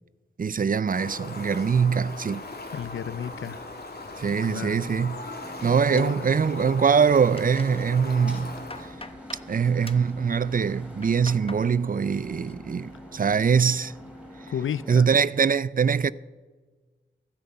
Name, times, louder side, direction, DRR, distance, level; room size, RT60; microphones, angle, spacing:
voice 1, 0.4-2.4 4.2-5.2 5.6-8.6 9.5-13.9 14.9-16.1, right 6 dB, 45° right, 0.4 m, -23 dB
Fowl, 0.9-8.9, left 2 dB, 55° left, 2.3 m, -39 dB
voice 2, 2.7-3.6 4.5-4.8 5.9-6.3 14.5-15.1, left 8 dB, 90° left, 0.5 m, -32 dB
sound 1, 5.4-14.9, equal, 5° right, 4.0 m, -44 dB
sound 2, 6.0-6.8 7.1-7.8 8.3-9.5 9.8-10.1 10.8-11.7 12.0-12.5 12.9-13.3, left 3 dB, 30° left, 1.0 m, -45 dB
15.5 x 11.0 x 5.6 m
cardioid pair, 50°, 20 cm